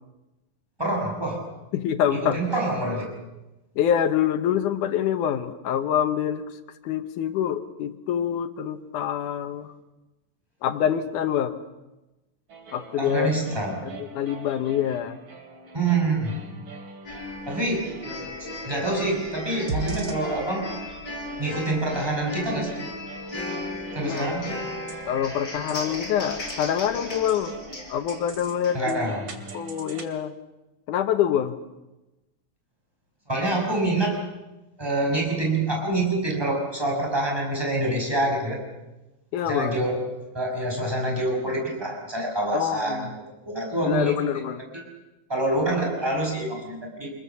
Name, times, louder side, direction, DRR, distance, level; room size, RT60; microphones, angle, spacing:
voice 1, 0.8-1.4 2.1-3.1 13.0-13.8 15.7-16.3 17.5-17.9 18.4-20.7 21.4-22.7 23.9-24.5 28.7-29.2 33.3-34.2 34.8-38.6 39.5-40.0 40.3-43.1 43.4-44.1 44.7-44.8 45.3-47.1, right 2 dB, 5° right, 0 dB, 5.8 m, -26 dB
voice 2, 1.7-2.4 3.8-6.4 6.8-9.7 10.6-11.6 12.7-13.3 14.0-15.2 24.0-24.3 25.1-27.6 27.9-29.1 29.5-30.3 30.9-31.5 39.3-39.8 42.5-43.1 43.8-44.6, left 9 dB, 75° left, 10 dB, 2.5 m, -25 dB
sound 1, 12.5-30.0, right 2 dB, 40° right, 2.8 m, -41 dB
sound 2, 17.1-28.7, left 2 dB, 35° left, 6.8 m, -36 dB
26.0 x 21.5 x 7.0 m, 1.0 s
omnidirectional pair, 3.8 m